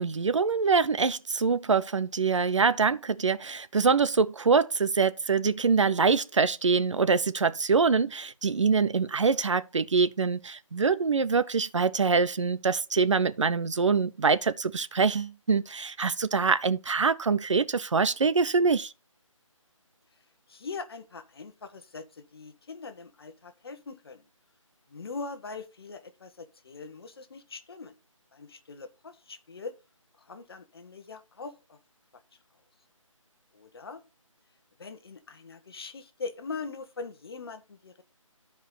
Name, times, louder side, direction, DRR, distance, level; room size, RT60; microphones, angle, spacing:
voice 1, 0.0-18.9, right 5 dB, 60° right, 0.7 m, -24 dB
voice 2, 20.2-24.2 24.9-27.9 28.3-29.7 30.2-31.8 32.1-32.2 33.5-34.0 34.8-38.0, left 4 dB, 45° left, 1.2 m, -42 dB
13.0 x 4.9 x 3.8 m
figure-of-eight pair, 160°, 17 cm